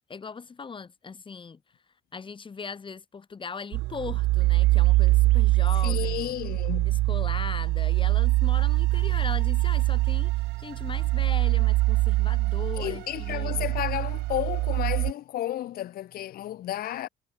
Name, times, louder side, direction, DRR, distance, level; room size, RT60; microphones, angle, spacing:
voice 1, 0.1-1.6 2.1-6.3 6.8-13.7, left 5 dB, 30° left, 7.1 m, -39 dB
sound 1, 3.7-15.1, right 20 dB, 85° right, 1.2 m, -24 dB
voice 2, 5.8-7.0 12.7-17.1, left 13 dB, 60° left, 1.3 m, -32 dB
cardioid pair, 110°, 17 cm